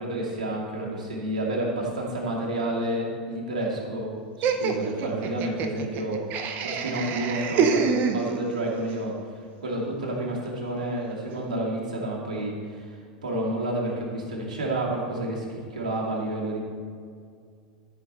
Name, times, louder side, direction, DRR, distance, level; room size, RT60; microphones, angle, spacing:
voice 1, 0.0-4.1 4.6-6.2 6.6-9.1 9.6-16.6, right 1 dB, 75° right, -3 dB, 2.4 m, -30 dB
Laughter, 4.4-8.7, right 6 dB, 45° right, 0.8 m, -27 dB
13.5 x 5.7 x 4.3 m, 2.2 s
figure-of-eight pair, 85°, 4 cm